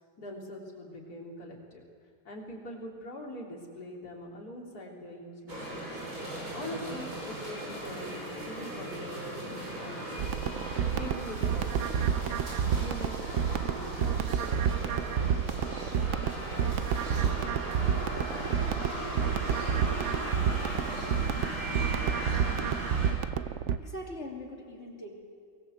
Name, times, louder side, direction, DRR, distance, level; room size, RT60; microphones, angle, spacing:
voice 1, 0.2-1.8 2.2-6.0 6.5-8.2 8.5-10.4 10.9-12.4 12.8-15.6, left 1 dB, 50° left, -1 dB, 4.1 m, -43 dB
sound 1, 5.5-23.1, right 1 dB, 45° right, 5.2 m, -38 dB
sound 2, 10.2-23.8, right 8 dB, 85° right, 0.6 m, -30 dB
voice 2, 23.8-25.1, left 1 dB, 35° left, 1 dB, 3.2 m, -41 dB
23.5 x 18.5 x 8.0 m, 2.3 s
omnidirectional pair, 2.1 m